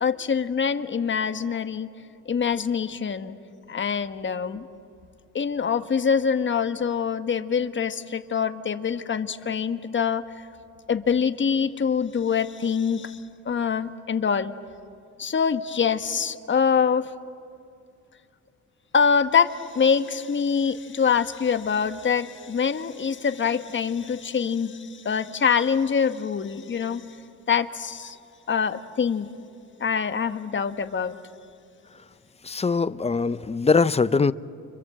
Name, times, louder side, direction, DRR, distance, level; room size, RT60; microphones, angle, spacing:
voice 1, 0.0-1.9 2.2-3.4 3.7-4.7 5.3-10.2 10.9-14.5 15.2-17.1 18.9-27.1 27.5-28.2 28.5-29.3 29.8-31.1, left 6 dB, 40° left, 9 dB, 1.3 m, -24 dB
voice 2, 32.4-34.3, left 4 dB, 20° left, 16 dB, 0.6 m, -22 dB
30.0 x 25.5 x 7.7 m, 2.5 s
cardioid pair, 90°, 30 cm